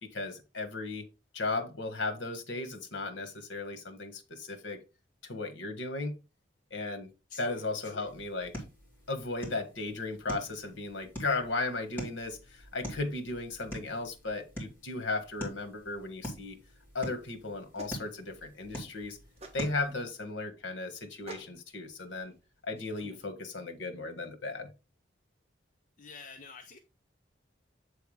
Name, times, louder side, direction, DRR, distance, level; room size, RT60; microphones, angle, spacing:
voice 1, 0.0-1.0 1.3-4.8 5.2-6.2 6.7-7.1 7.4-8.5 9.1-16.6 16.9-19.2 19.5-22.3 22.6-24.7, left 3 dB, 75° left, 1.4 m, -36 dB
voice 2, 7.3-8.1 26.0-26.8, left 4 dB, 40° left, 0.6 m, -48 dB
sound 1, 8.0-20.0, equal, 10° left, 2.5 m, -45 dB
sound 2, 17.2-23.3, right 1 dB, 30° right, 1.3 m, -52 dB
8.0 x 3.5 x 4.8 m
head